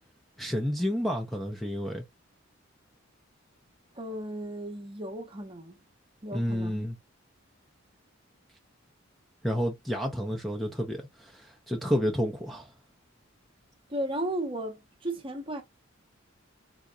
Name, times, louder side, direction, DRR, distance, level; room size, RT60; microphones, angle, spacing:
voice 1, 0.4-2.0 6.3-6.9 9.4-12.7, equal, ahead, 0.6 m, -30 dB
voice 2, 4.0-5.8 6.2-6.9 13.9-15.6, right 1 dB, 25° right, 0.8 m, -35 dB
3.7 x 2.8 x 2.3 m
head